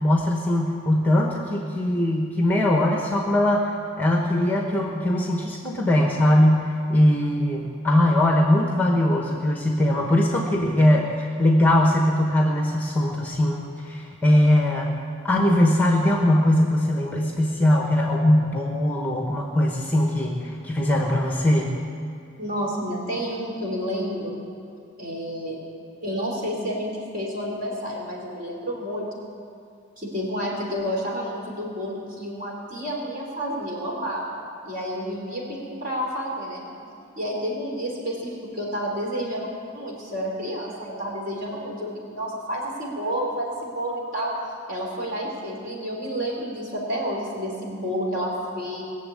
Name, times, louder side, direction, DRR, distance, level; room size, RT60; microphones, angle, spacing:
voice 1, 0.0-3.7 4.0-14.9 15.2-21.7, left 1 dB, 10° left, 0 dB, 1.0 m, -21 dB
voice 2, 22.4-24.3 25.0-25.6 26.0-29.1 30.0-34.4 34.6-36.6 37.2-39.5 39.7-44.3 44.7-48.8, equal, 40° right, -2 dB, 3.7 m, -30 dB
21.0 x 7.4 x 8.5 m, 2.4 s
head